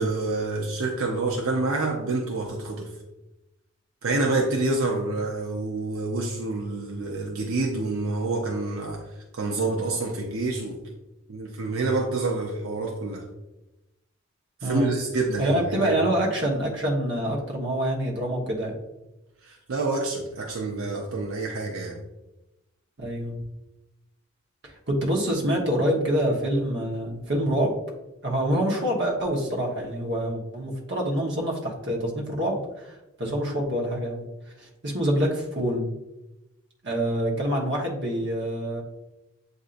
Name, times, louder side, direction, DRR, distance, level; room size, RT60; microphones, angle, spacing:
voice 1, 0.0-2.9 4.0-9.0 9.3-10.8 11.3-13.2 14.6-15.9 19.4-22.0, right 3 dB, 85° right, -1 dB, 0.6 m, -27 dB
voice 2, 14.6-14.9 15.4-18.7 23.0-23.4 24.6-27.8 28.2-34.2 34.6-35.9 36.8-38.8, right 1 dB, 55° right, -1 dB, 1.1 m, -26 dB
7.9 x 2.7 x 2.5 m, 0.96 s
head